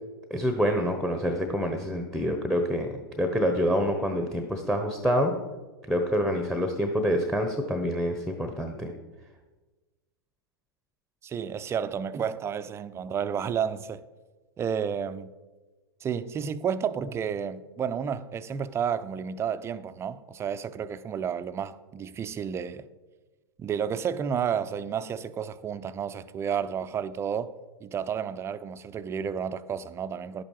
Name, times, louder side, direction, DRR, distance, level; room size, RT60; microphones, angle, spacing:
voice 1, 0.3-5.3 5.9-8.9, equal, ahead, 1.0 m, -27 dB
voice 2, 11.2-14.0 14.6-15.3 16.0-22.9 23.6-27.5 27.8-30.4, right 7 dB, 20° right, 0.6 m, -31 dB
11.0 x 8.8 x 4.8 m
hypercardioid pair, 100°, 13 cm